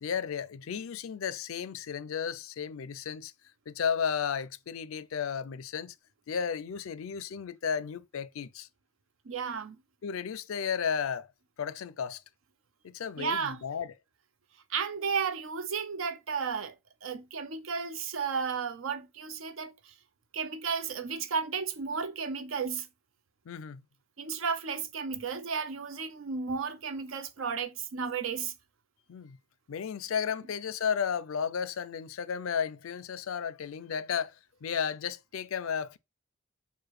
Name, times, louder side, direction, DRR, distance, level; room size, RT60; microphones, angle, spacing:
voice 1, 0.0-3.3 3.7-5.9 6.3-8.7 10.0-11.3 11.6-12.2 12.8-13.9 23.5-23.8 29.1-29.4 29.7-34.4 34.6-36.0, left 7 dB, 75° left, 0.4 m, -33 dB
voice 2, 9.2-9.8 13.2-13.6 14.7-16.7 17.0-19.9 20.3-22.9 24.2-28.5, right 5 dB, 65° right, 0.6 m, -33 dB
4.8 x 2.1 x 4.7 m
head